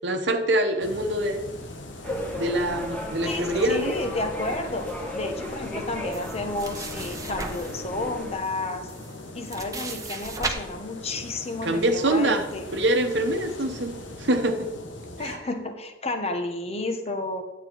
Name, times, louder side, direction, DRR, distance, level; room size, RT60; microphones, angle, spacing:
voice 1, 0.0-1.4 2.3-3.9 11.6-12.5 12.7-14.7 15.2-15.4, right 1 dB, 65° right, 5 dB, 1.0 m, -25 dB
sound 1, 0.8-15.4, left 2 dB, 85° left, 1.4 m, -41 dB
sound 2, 2.0-8.4, left 1 dB, 5° left, 1.7 m, -35 dB
voice 2, 3.2-8.9 9.3-12.6 15.2-17.4, left 2 dB, 35° left, 6 dB, 1.2 m, -31 dB
sound 3, 6.1-7.8 8.5-8.6 8.9-10.5, right 3 dB, 20° right, 1.1 m, -35 dB
11.5 x 8.2 x 4.6 m, 1.1 s
head